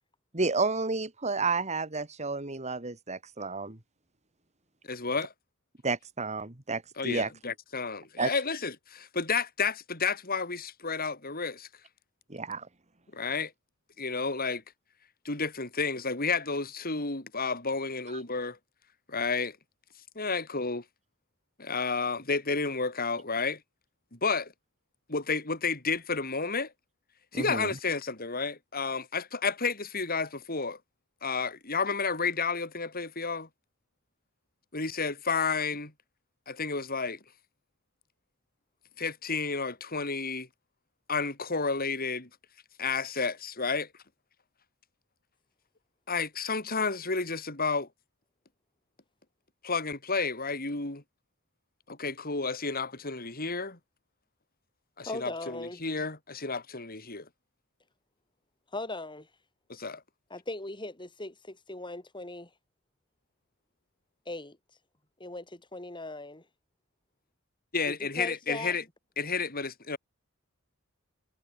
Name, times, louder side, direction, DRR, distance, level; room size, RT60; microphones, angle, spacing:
voice 1, 0.3-3.8 5.8-7.3 8.2-8.3 12.3-12.7 27.3-27.7, right 3 dB, 35° right, 2.2 m, -31 dB
voice 2, 4.9-5.3 7.0-11.7 13.1-13.5 14.0-14.6 15.2-18.6 19.1-19.6 20.1-20.8 21.6-23.6 24.1-24.5 25.1-26.7 27.3-30.8 31.2-33.5 34.7-35.9 36.5-37.2 39.0-40.5 41.1-42.3 42.8-43.9 46.1-47.9 49.6-51.0 51.9-53.8 55.0-57.3 59.7-60.0 67.7-68.8 69.2-70.0, left 4 dB, 45° left, 4.9 m, -31 dB
voice 3, 55.0-55.8 58.7-59.3 60.3-62.5 64.3-64.6 65.2-66.4 67.9-68.7, left 2 dB, 25° left, 6.1 m, -39 dB
head